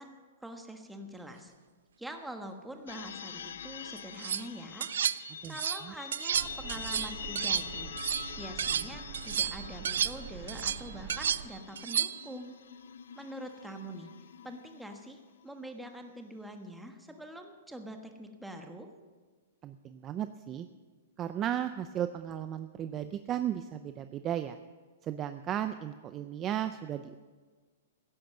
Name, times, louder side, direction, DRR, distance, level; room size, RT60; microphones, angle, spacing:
voice 1, 0.0-1.5 2.0-7.9 8.4-12.6 13.2-14.1 14.4-18.9, right 1 dB, 5° right, 4 dB, 1.3 m, -45 dB
sound 1, 2.9-15.4, left 8 dB, 80° left, 0.6 m, -46 dB
sound 2, 4.0-4.4 4.8-5.8 6.1-8.9 9.1-12.3, right 8 dB, 80° right, 0.4 m, -32 dB
sound 3, 6.3-11.5, right 6 dB, 55° right, 3.1 m, -45 dB
voice 2, 19.6-20.7 21.2-24.6 25.0-27.2, right 10 dB, 25° right, 10 dB, 0.5 m, -35 dB
16.5 x 10.0 x 6.5 m, 1.4 s
hypercardioid pair, 150°, 0 cm